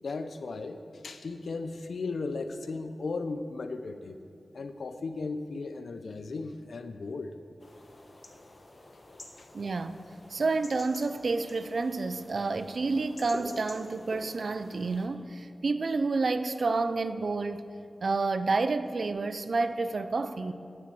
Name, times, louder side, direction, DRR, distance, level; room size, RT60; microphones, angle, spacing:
voice 1, 0.0-4.2 4.5-7.4 9.4-9.5, left 3 dB, 80° left, 9 dB, 0.6 m, -36 dB
sound 1, 7.6-15.1, left 1 dB, 40° left, 1.1 m, -48 dB
voice 2, 9.5-10.0 10.3-17.7 18.0-20.5, right 3 dB, 60° right, 11 dB, 0.5 m, -29 dB
9.7 x 7.3 x 7.7 m, 2.5 s
wide cardioid pair, 100°, 0 cm